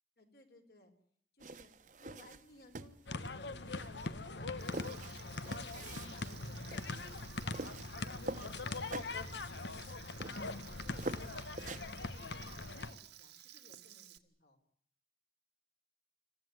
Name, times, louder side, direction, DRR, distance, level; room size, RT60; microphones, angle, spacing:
voice 1, 0.2-0.9 1.3-1.7 2.0-9.3 9.7-14.6, left 2 dB, 60° left, 6 dB, 4.2 m, -61 dB
sound 1, 1.4-12.0, right 2 dB, 45° right, 1.2 m, -47 dB
sound 2, 3.1-12.9, left 3 dB, 85° left, 1.3 m, -42 dB
Frying (food), 4.6-14.2, right 13 dB, 80° right, 1.8 m, -56 dB
27.0 x 15.5 x 9.4 m, 0.64 s
head